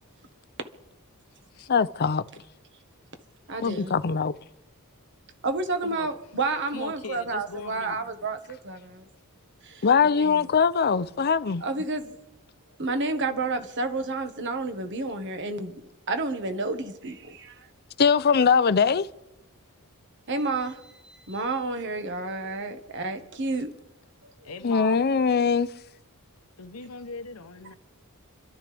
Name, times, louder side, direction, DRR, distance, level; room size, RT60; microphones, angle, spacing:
voice 1, 1.7-2.2 3.6-4.3 9.8-11.6 18.0-19.1 24.6-25.7, left 5 dB, 45° left, 0.6 m, -21 dB
voice 2, 3.5-3.9 5.4-9.1 9.6-9.8 10.2-10.5 11.6-12.2 12.8-15.8 16.1-17.7 20.3-23.7, right 3 dB, 55° right, 1.5 m, -30 dB
voice 3, 6.7-8.0 24.4-25.0 26.6-27.8, left 4 dB, 80° left, 1.0 m, -39 dB
30.0 x 12.5 x 3.5 m
head